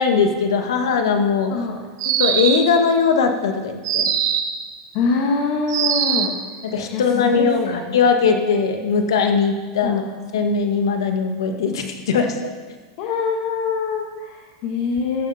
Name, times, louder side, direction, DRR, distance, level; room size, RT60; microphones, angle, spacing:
voice 1, 0.0-1.5 2.2-4.1 6.6-10.0 10.3-12.5, left 5 dB, 85° left, 5 dB, 1.6 m, -20 dB
voice 2, 1.5-1.8 4.9-6.3 6.8-8.0 9.8-10.0 13.0-15.3, left 4 dB, 45° left, 1 dB, 1.6 m, -24 dB
sound 1, 2.0-2.8 3.8-4.6 5.7-6.4, right 8 dB, 70° right, 1.3 m, -21 dB
14.5 x 11.0 x 4.3 m, 1.4 s
supercardioid pair, 150°, 2 cm